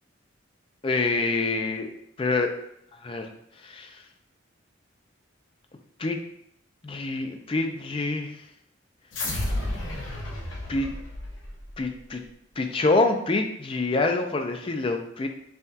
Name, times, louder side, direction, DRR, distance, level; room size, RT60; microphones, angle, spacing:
voice 1, 0.8-1.9 2.2-2.5 3.0-3.3 3.6-3.9 6.0-6.2 6.8-8.3 10.7-10.9 11.8-12.2 12.6-15.3, left 3 dB, 25° left, 5 dB, 0.3 m, -26 dB
sound 1, 9.1-11.8, left 1 dB, 75° left, 0.9 m, -32 dB
5.5 x 2.3 x 2.7 m, 0.75 s
head